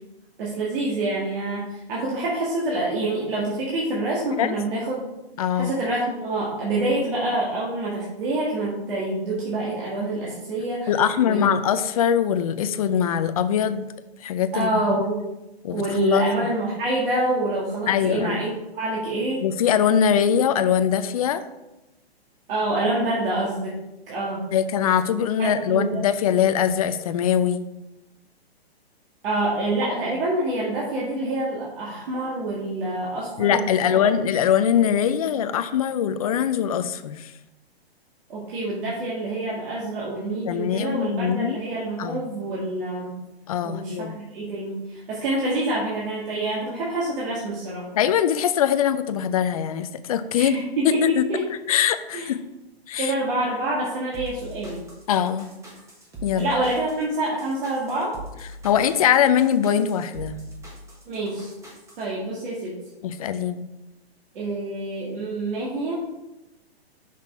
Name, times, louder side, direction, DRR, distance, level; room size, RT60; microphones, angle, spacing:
voice 1, 0.4-5.0 5.5-10.9 11.2-11.5 14.5-15.2 15.7-19.4 22.5-23.8 24.1-24.4 25.4-25.9 29.2-34.3 38.3-43.2 43.6-47.9 50.3-51.4 52.1-52.3 53.0-54.8 56.4-58.1 61.1-61.5 62.0-62.7 64.3-65.9, right 2 dB, 55° right, -5 dB, 2.1 m, -27 dB
voice 2, 5.4-5.7 10.9-13.9 14.2-15.0 15.6-16.2 17.9-18.4 19.4-21.4 24.5-27.6 33.4-37.3 40.5-41.6 42.0-42.2 43.5-44.2 47.9-50.6 50.8-51.2 51.7-52.4 52.9-53.1 55.1-55.5 56.2-56.5 58.6-60.4 63.0-63.7, left 9 dB, 35° left, 11 dB, 0.4 m, -22 dB
sound 1, 54.1-62.0, right 1 dB, 10° right, 1.2 m, -42 dB
6.0 x 5.8 x 4.5 m, 0.98 s
hypercardioid pair, 145°, 32 cm